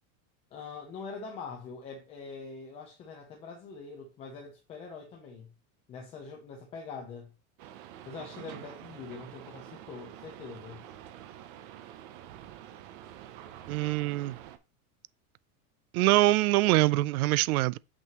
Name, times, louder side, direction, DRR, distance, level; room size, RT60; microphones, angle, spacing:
voice 1, 0.5-5.5 5.9-7.3 8.1-10.8, left 5 dB, 15° left, 0.5 m, -43 dB
sound 1, 7.6-14.6, right 11 dB, 35° right, 0.6 m, -47 dB
voice 2, 13.7-14.4 15.9-17.8, right 18 dB, 80° right, 0.5 m, -24 dB
7.5 x 6.1 x 2.9 m
supercardioid pair, 180°, 43 cm